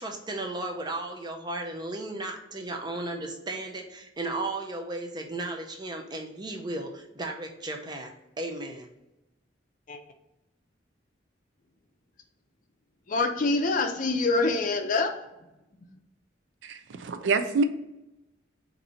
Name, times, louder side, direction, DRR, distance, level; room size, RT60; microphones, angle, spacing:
voice 1, 0.0-8.9, right 2 dB, 25° right, 0.5 m, -35 dB
voice 2, 13.1-15.1, left 3 dB, 45° left, 0.5 m, -25 dB
voice 3, 16.6-17.6, right 4 dB, 70° right, 0.4 m, -26 dB
4.2 x 2.6 x 4.2 m
head